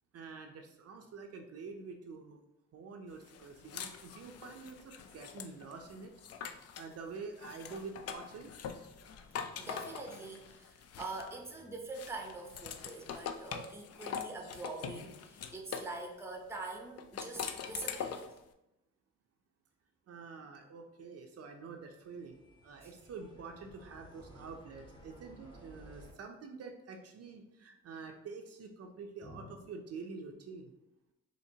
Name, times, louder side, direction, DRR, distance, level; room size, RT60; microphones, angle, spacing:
voice 1, 0.1-2.4 2.7-8.5 17.7-17.8 20.1-30.7, right 4 dB, 55° right, 3 dB, 0.5 m, -47 dB
sound 1, 3.3-6.9 7.4-11.5 11.9-16.0 17.0-18.4, left 7 dB, 55° left, 0.4 m, -43 dB
voice 2, 9.0-18.2 22.8-22.9 29.2-29.6, right 2 dB, 10° right, 2 dB, 0.6 m, -44 dB
sound 2, 22.0-26.1, right 1 dB, 15° left, 0.9 m, -56 dB
4.3 x 2.8 x 2.8 m, 0.90 s
cardioid pair, 90°, 30 cm